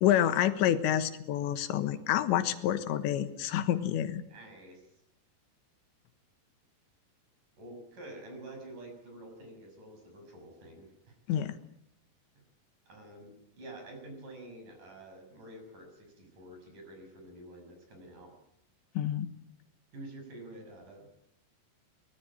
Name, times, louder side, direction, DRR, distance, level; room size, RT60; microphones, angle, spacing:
voice 1, 0.0-4.2 11.3-11.6 19.0-19.3, left 11 dB, 85° left, 10 dB, 3.6 m, -28 dB
voice 2, 4.3-4.9 7.6-11.1 12.9-18.3 19.9-21.3, right 1 dB, 45° right, 4 dB, 7.8 m, -48 dB
24.0 x 19.0 x 8.8 m, 0.79 s
omnidirectional pair, 5.1 m